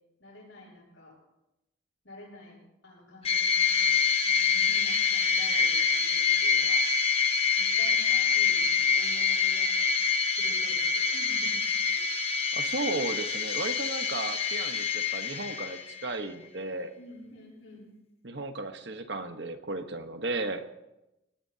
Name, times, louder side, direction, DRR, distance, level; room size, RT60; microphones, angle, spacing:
voice 1, 0.2-1.2 2.0-6.8 7.6-9.9 10.3-12.2 17.0-17.9, left 1 dB, 75° left, -2 dB, 7.3 m, -49 dB
sound 1, 3.2-16.1, left 6 dB, 30° left, 1.2 m, -26 dB
voice 2, 12.5-16.9 18.2-20.7, right 2 dB, 60° right, 7 dB, 1.2 m, -34 dB
23.5 x 18.5 x 2.8 m, 0.92 s
head